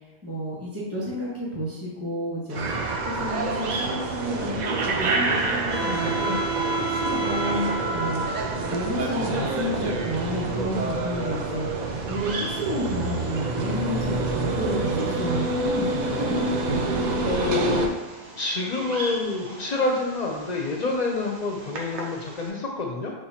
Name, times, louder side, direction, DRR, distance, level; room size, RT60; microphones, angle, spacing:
voice 1, 0.2-2.7 3.0-8.2 8.7-11.7 12.1-16.4, equal, 15° right, -6 dB, 1.0 m, -31 dB
sound 1, 2.5-17.9, right 3 dB, 55° right, 0.5 m, -27 dB
Bird vocalization bird call bird song, 2.5-22.5, right 2 dB, 80° right, 1.0 m, -41 dB
voice 2, 17.0-17.9 18.4-23.1, left 3 dB, 50° left, 1 dB, 0.5 m, -27 dB
6.0 x 3.1 x 2.8 m, 1.2 s
omnidirectional pair, 1.2 m